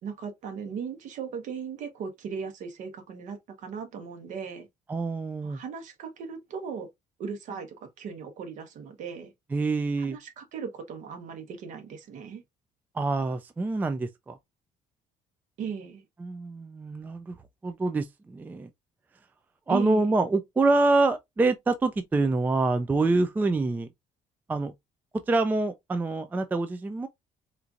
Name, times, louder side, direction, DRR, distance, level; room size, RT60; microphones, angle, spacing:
voice 1, 0.0-4.7 5.4-6.9 7.2-9.3 10.0-12.4 15.6-16.0 19.7-20.1, right 6 dB, 60° right, 1.2 m, -37 dB
voice 2, 4.9-5.6 9.5-10.2 12.9-14.4 16.2-17.4 17.6-18.7 19.7-23.9 24.5-24.7 25.3-27.1, right 3 dB, 10° right, 0.3 m, -26 dB
4.3 x 2.6 x 2.4 m
cardioid pair, 145°, 14 cm